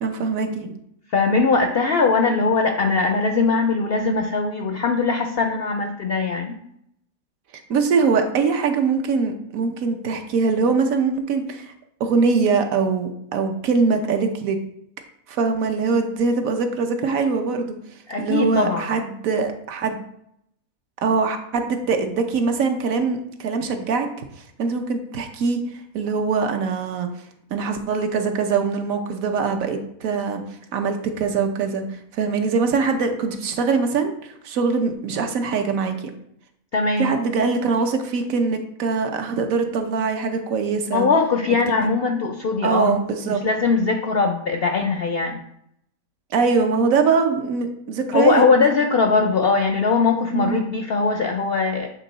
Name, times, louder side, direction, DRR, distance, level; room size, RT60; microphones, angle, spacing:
voice 1, 0.0-0.8 7.7-11.7 12.0-14.6 15.3-17.8 18.2-20.0 21.0-24.3 24.6-25.6 25.9-27.1 27.5-30.4 30.7-31.8 32.1-36.1 37.0-41.1 41.8-41.9 42.6-43.4 46.3-48.4 50.3-50.6, right 5 dB, 70° right, 5 dB, 1.1 m, -22 dB
voice 2, 1.1-6.6 18.1-18.9 36.7-37.1 40.9-43.0 43.3-45.4 48.1-51.9, left 4 dB, 70° left, 5 dB, 0.6 m, -20 dB
7.5 x 3.7 x 4.0 m, 0.74 s
omnidirectional pair, 1.5 m